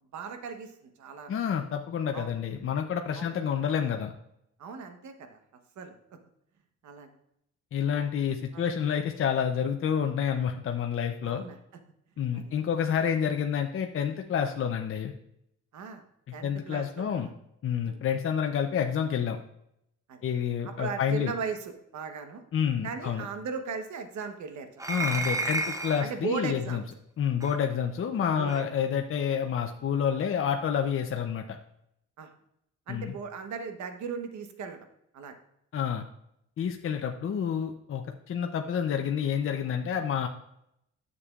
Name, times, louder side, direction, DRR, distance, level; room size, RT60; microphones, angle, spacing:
voice 1, 0.1-1.4 2.1-2.4 3.2-3.3 4.6-5.4 5.8-6.0 6.8-7.1 7.9-8.0 8.5-8.7 11.2-11.6 12.3-12.4 15.7-16.0 16.3-17.3 17.8-18.0 20.1-20.2 20.6-22.4 22.8-25.1 26.0-26.8 28.4-28.6 32.2-32.3 32.9-34.8 35.1-35.3, right 5 dB, 70° right, 6 dB, 1.1 m, -37 dB
voice 2, 1.3-4.1 7.7-11.4 12.2-15.1 16.4-17.3 17.6-19.4 20.2-21.3 22.5-23.2 24.9-26.8 27.2-31.4 32.9-33.2 35.7-36.0 36.6-40.3, left 8 dB, 45° left, 4 dB, 0.6 m, -29 dB
sound 1, 24.8-26.1 27.4-27.6 28.5-28.6, right 3 dB, 10° right, 0.6 m, -31 dB
9.7 x 6.8 x 2.4 m, 0.78 s
cardioid pair, 90°, 30 cm